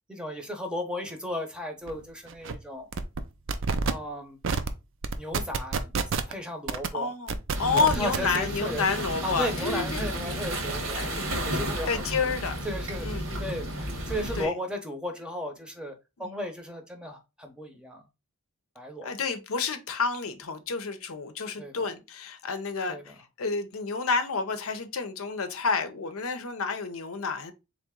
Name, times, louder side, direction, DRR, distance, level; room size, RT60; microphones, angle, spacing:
voice 1, 0.1-2.9 3.8-4.4 5.2-5.9 6.3-7.1 7.7-8.8 9.2-11.0 11.5-12.0 12.6-15.9 16.2-18.0 18.8-19.1 21.6-21.8 22.9-23.0, equal, 5° right, 0.8 m, -35 dB
sound 1, 1.9-2.0 2.3-2.5 2.9-3.2 3.5-3.9 4.4-4.7 5.0-6.3 6.7-6.9 7.3-8.4, right 5 dB, 60° right, 0.5 m, -28 dB
voice 2, 6.9-10.0 10.9-11.3 11.9-12.6 13.0-13.5 14.3-14.6 16.2-16.4 19.0-27.5, left 4 dB, 75° left, 0.7 m, -30 dB
sound 2, 7.5-14.5, right 1 dB, 80° right, 1.5 m, -32 dB
3.9 x 3.3 x 3.6 m
head